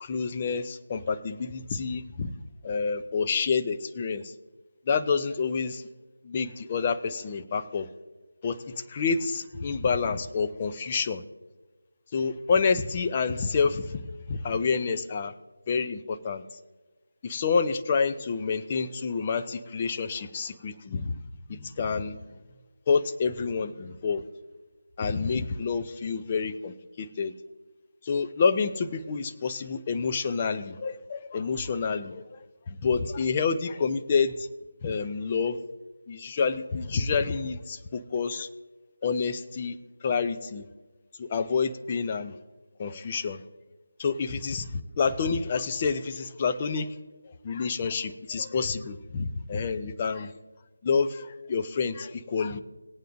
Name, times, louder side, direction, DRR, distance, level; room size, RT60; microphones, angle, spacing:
voice 1, 0.0-2.3 2.6-4.3 4.9-5.8 6.2-7.9 8.4-11.2 12.1-14.0 14.3-15.3 15.7-16.4 17.2-21.2 21.5-22.2 22.9-24.2 25.0-27.3 28.1-32.4 32.7-34.5 34.8-35.6 36.1-38.5 39.0-39.8 40.0-40.7 41.2-42.3 42.8-43.4 44.0-46.9 47.2-50.3 50.8-52.6, left 5 dB, 25° left, 9 dB, 0.6 m, -28 dB
18.5 x 9.0 x 2.6 m, 1.2 s
figure-of-eight pair, 165°, 0 cm